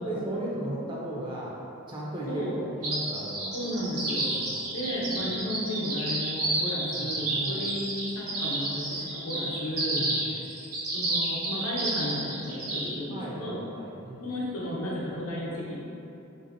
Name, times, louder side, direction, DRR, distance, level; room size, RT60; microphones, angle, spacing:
voice 1, 0.0-1.6 1.9-3.6 4.3-4.7 6.9-7.7 9.9-10.3 13.1-14.3, right 1 dB, 20° right, -5 dB, 0.3 m, -36 dB
voice 2, 2.3-2.6 3.5-4.4 4.7-10.4 10.9-13.6 14.2-15.8, left 1 dB, 80° left, -5 dB, 0.7 m, -33 dB
sound 1, 2.8-12.9, right 2 dB, 80° right, 0.8 m, -30 dB
3.4 x 2.6 x 2.5 m, 2.8 s
head